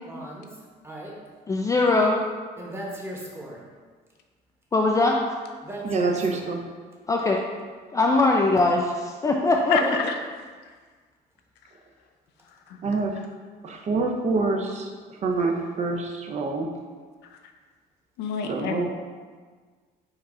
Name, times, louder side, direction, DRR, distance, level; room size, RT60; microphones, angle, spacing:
voice 1, 0.0-1.1 2.6-3.6 5.6-6.5 9.8-9.9, right 1 dB, 15° right, -3 dB, 1.0 m, -37 dB
voice 2, 1.5-2.2 4.7-5.2 7.1-7.4 7.9-10.0, left 2 dB, 20° left, 0 dB, 0.3 m, -21 dB
voice 3, 5.8-6.6 12.8-13.2 13.6-14.9 15.2-16.7 18.5-18.9, right 3 dB, 40° right, 2 dB, 0.5 m, -26 dB
voice 4, 9.7-10.1 12.7-12.8 17.3-17.4 18.2-18.9, left 6 dB, 80° left, 4 dB, 0.5 m, -28 dB
4.7 x 2.4 x 4.3 m, 1.5 s
cardioid pair, 110°, 17 cm